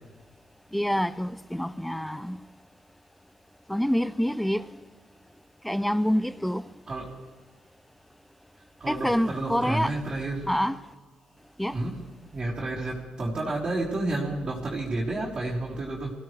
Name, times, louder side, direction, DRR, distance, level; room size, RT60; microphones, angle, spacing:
voice 1, 0.7-2.4 3.7-4.6 5.6-6.6 8.9-9.9 10.5-10.8 11.6-11.7, equal, 5° left, 0.5 m, -26 dB
voice 2, 8.8-10.5 11.7-11.9 12.3-16.1, right 2 dB, 30° right, 3.7 m, -30 dB
23.0 x 16.0 x 3.3 m
cardioid pair, 90°, 2 cm